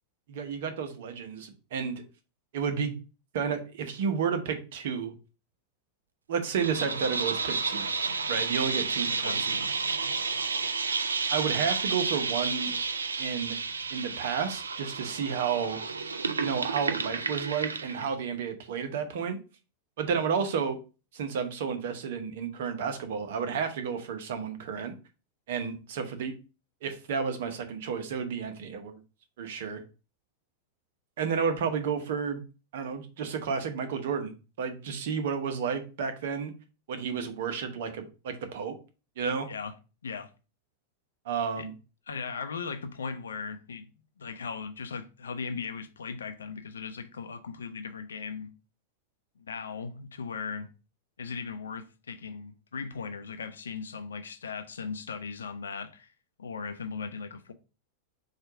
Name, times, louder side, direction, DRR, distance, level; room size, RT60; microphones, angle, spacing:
voice 1, 0.3-2.0 2.5-3.0 3.3-5.1 6.3-7.9 8.3-9.6 11.3-12.7 13.2-13.6 13.9-15.8 16.4-19.4 20.0-20.8 21.1-24.9 25.5-26.3 26.8-29.0 29.4-29.8 31.2-32.4 32.7-36.5 36.9-38.7 39.2-39.5 41.2-41.7, right 6 dB, 55° right, 0.8 m, -31 dB
sound 1, 6.6-18.1, right 4 dB, 75° right, 0.4 m, -31 dB
voice 2, 9.1-9.4 39.5-39.7 40.0-40.3 41.6-41.7 42.1-43.9 44.2-48.5 49.4-50.7 51.2-56.1 56.4-57.5, left 5 dB, 70° left, 0.5 m, -38 dB
4.5 x 2.5 x 4.7 m
figure-of-eight pair, 90°, 0 cm